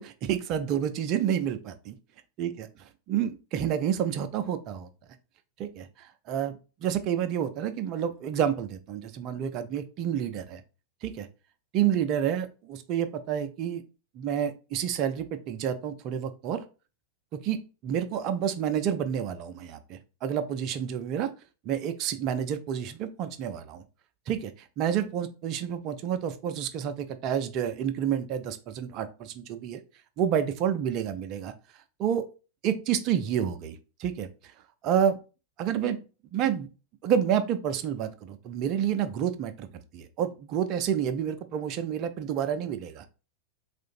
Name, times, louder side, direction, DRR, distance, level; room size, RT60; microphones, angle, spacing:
voice 1, 0.0-1.9 2.4-2.7 3.1-4.9 5.6-5.9 6.3-10.6 11.0-11.3 11.7-13.8 14.1-16.6 17.4-21.3 21.6-23.8 24.3-29.8 30.2-31.5 32.0-32.3 32.6-34.5 34.8-35.2 35.6-36.0 36.3-36.7 37.0-39.7 39.9-43.0, right 9 dB, 40° right, 9 dB, 0.5 m, -29 dB
3.6 x 2.5 x 4.4 m, 0.34 s
figure-of-eight pair, 90°, 0 cm